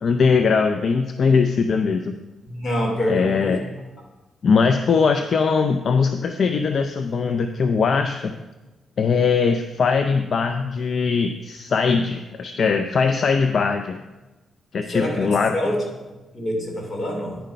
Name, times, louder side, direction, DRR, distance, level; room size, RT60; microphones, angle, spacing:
voice 1, 0.0-2.1 3.1-3.6 4.4-8.3 9.0-14.0 14.7-15.6, left 5 dB, 60° left, 7 dB, 0.5 m, -20 dB
voice 2, 2.5-3.6 14.8-15.3 15.5-15.8 16.3-17.4, left 1 dB, 35° left, 0 dB, 2.9 m, -25 dB
10.5 x 5.2 x 5.6 m, 1.1 s
cardioid pair, 75°, 0 cm